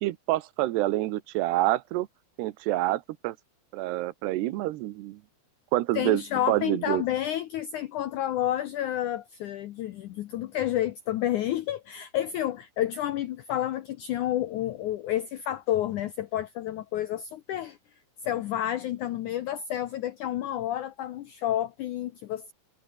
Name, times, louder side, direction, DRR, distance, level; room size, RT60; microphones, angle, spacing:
voice 1, 0.0-2.1 2.4-3.4 3.7-5.2 5.7-6.2 6.5-7.0, right 16 dB, 85° right, 3.1 m, -27 dB
voice 2, 5.9-22.5, left 12 dB, 80° left, 1.8 m, -30 dB
omnidirectional pair, 4.7 m